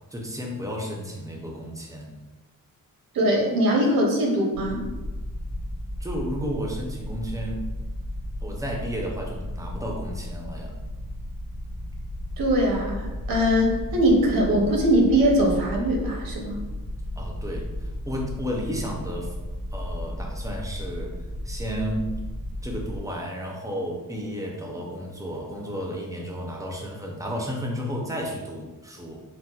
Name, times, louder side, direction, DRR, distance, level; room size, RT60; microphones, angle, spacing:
voice 1, 0.1-2.2 6.0-7.7 8.4-10.8 17.1-19.4 19.7-21.2 21.4-22.1 22.6-29.2, equal, 10° right, 0 dB, 0.4 m, -32 dB
voice 2, 3.1-4.8 12.4-16.6, equal, 85° right, 0 dB, 0.7 m, -21 dB
sound 1, 4.5-23.0, left 1 dB, 80° left, 0.6 m, -34 dB
4.0 x 2.1 x 2.3 m, 1.2 s
wide cardioid pair, 115°, 34 cm